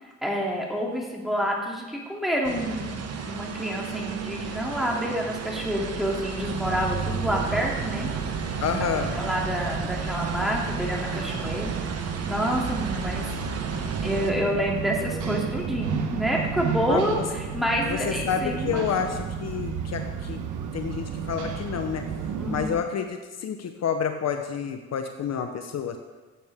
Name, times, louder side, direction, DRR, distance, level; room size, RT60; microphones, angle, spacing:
voice 1, 0.0-8.1 8.7-8.8 9.1-11.7 12.3-13.3 14.0-19.1 22.4-22.8, equal, ahead, -2 dB, 2.7 m, -28 dB
sound 1, 2.4-14.3, right 6 dB, 55° right, 1.3 m, -33 dB
sound 2, 6.4-22.7, right 6 dB, 80° right, 1.2 m, -32 dB
voice 2, 8.6-9.2 16.8-17.2 17.9-20.4 20.7-22.1 22.5-26.0, left 7 dB, 60° left, 6 dB, 0.9 m, -29 dB
15.0 x 8.6 x 3.6 m, 1.3 s
cardioid pair, 90°, 30 cm